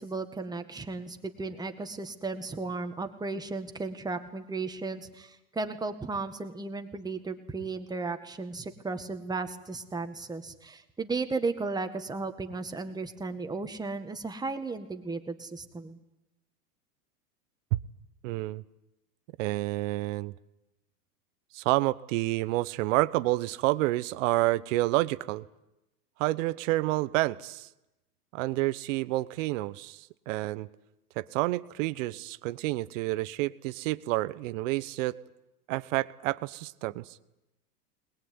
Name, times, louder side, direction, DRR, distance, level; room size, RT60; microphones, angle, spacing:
voice 1, 0.0-16.0, right 3 dB, 10° right, 7 dB, 1.9 m, -35 dB
voice 2, 18.2-18.6 19.4-20.3 21.5-25.4 26.2-27.7 28.3-30.7 31.2-35.2 35.7-37.1, right 19 dB, 55° right, 16 dB, 1.1 m, -29 dB
22.5 x 21.0 x 9.6 m, 0.92 s
supercardioid pair, 140°, 47 cm